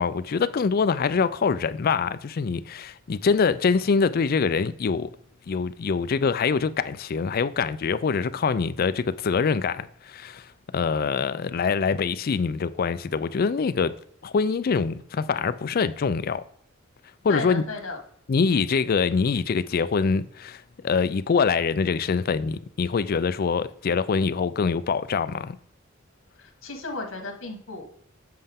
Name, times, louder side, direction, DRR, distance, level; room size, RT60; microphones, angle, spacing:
voice 1, 0.0-5.1 5.5-10.4 10.7-13.9 14.2-16.4 17.2-17.6 18.3-25.6, left 5 dB, 50° left, 0.4 m, -24 dB
voice 2, 17.3-18.0 26.6-27.9, left 3 dB, 75° left, 1.6 m, -33 dB
7.6 x 5.4 x 3.6 m
head